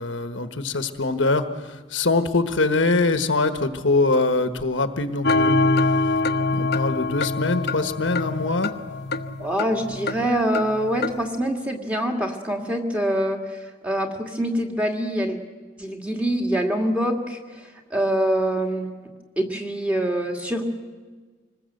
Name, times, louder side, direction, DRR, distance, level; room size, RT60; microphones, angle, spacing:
voice 1, 0.0-5.5 6.5-8.7, left 3 dB, 70° left, 9 dB, 1.3 m, -23 dB
sound 1, 5.2-11.3, left 2 dB, 50° left, 0.9 m, -24 dB
voice 2, 9.4-13.6 13.8-15.4 15.8-18.9 19.4-20.6, right 1 dB, 5° right, 1 dB, 2.1 m, -25 dB
25.5 x 20.5 x 7.9 m, 1.4 s
head